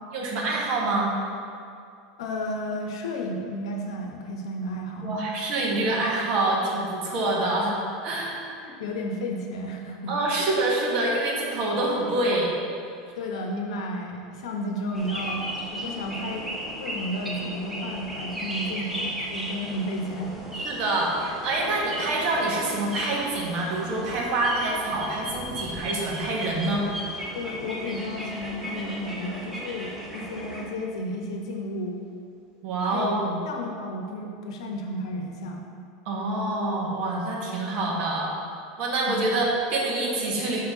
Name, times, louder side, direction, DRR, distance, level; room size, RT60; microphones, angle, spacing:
voice 1, 0.1-1.1 5.0-7.8 8.0-8.4 10.1-12.5 20.6-26.9 32.6-33.4 36.0-38.3 38.8-40.6, right 2 dB, 45° right, -3 dB, 1.3 m, -26 dB
voice 2, 2.2-5.1 8.6-10.1 13.1-15.4 15.7-16.4 16.8-20.3 27.3-31.9 32.9-33.1 33.4-35.6 37.8-37.9 39.1-39.4, left 1 dB, 90° left, 2 dB, 0.9 m, -32 dB
sound 1, 14.9-30.6, equal, 5° right, 0.8 m, -36 dB
6.1 x 5.6 x 3.6 m, 2.4 s
supercardioid pair, 160°, 3 cm